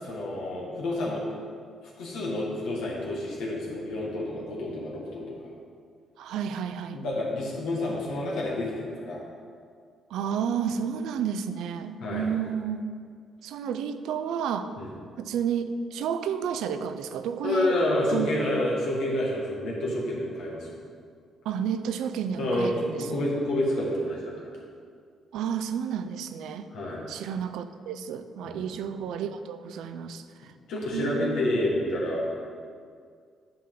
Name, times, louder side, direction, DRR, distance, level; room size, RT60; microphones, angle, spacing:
voice 1, 0.0-1.2 2.0-5.5 6.9-9.2 12.0-12.3 14.8-14.9 17.4-20.8 22.4-24.5 26.7-27.0 28.4-28.8 30.7-32.4, left 1 dB, 85° left, -4 dB, 1.8 m, -29 dB
voice 2, 6.2-7.0 10.1-12.8 13.4-14.7 15.2-17.8 18.1-18.3 21.4-23.2 25.3-26.7 27.1-30.5 30.9-31.5, right 7 dB, 85° right, 10 dB, 0.4 m, -31 dB
9.7 x 5.8 x 3.8 m, 2.2 s
cardioid pair, 90°, 0 cm